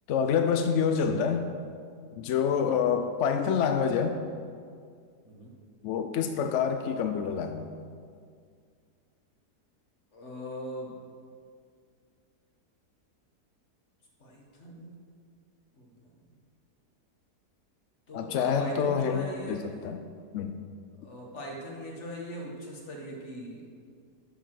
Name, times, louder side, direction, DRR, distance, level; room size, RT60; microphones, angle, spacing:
voice 1, 0.1-1.5 2.2-4.2 5.8-7.7 18.1-19.6 19.8-20.0 20.3-20.6, left 7 dB, 70° left, 7 dB, 0.7 m, -27 dB
voice 2, 10.1-11.0 14.2-15.0 15.7-16.3 18.1-19.8 21.0-23.7, equal, 45° left, -1 dB, 1.8 m, -40 dB
11.5 x 4.8 x 6.0 m, 2.2 s
omnidirectional pair, 1.7 m